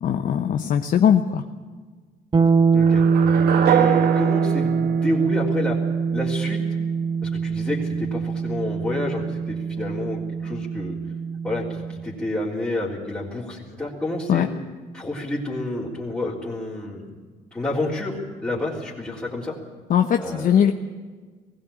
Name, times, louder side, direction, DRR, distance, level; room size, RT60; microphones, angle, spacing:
voice 1, 0.0-1.4 14.3-14.5 19.9-20.7, left 8 dB, 50° left, 5 dB, 1.0 m, -20 dB
sound 1, 2.3-12.1, right 5 dB, 25° right, 1.2 m, -23 dB
voice 2, 2.7-5.8 6.1-6.6 7.2-11.0 11.4-14.5 14.9-17.2 17.5-19.6 20.2-20.5, left 1 dB, 10° left, -8 dB, 3.7 m, -29 dB
sound 2, 2.8-5.9, right 9 dB, 65° right, 1.5 m, -25 dB
19.5 x 16.0 x 8.7 m, 1.4 s
cardioid pair, 110°, 17 cm